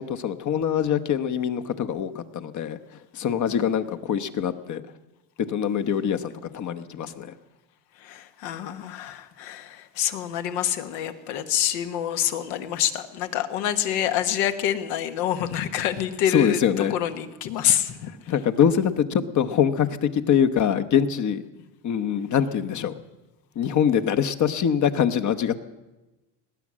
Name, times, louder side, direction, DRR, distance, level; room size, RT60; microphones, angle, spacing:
voice 1, 0.0-2.8 3.1-4.8 5.5-7.3 16.3-16.9 18.3-21.4 21.8-22.9 23.6-25.6, left 8 dB, 35° left, 9 dB, 1.0 m, -24 dB
voice 2, 8.0-16.6 16.9-18.1, left 11 dB, 75° left, 9 dB, 1.4 m, -27 dB
18.5 x 9.8 x 7.4 m, 1.1 s
supercardioid pair, 110°, 48 cm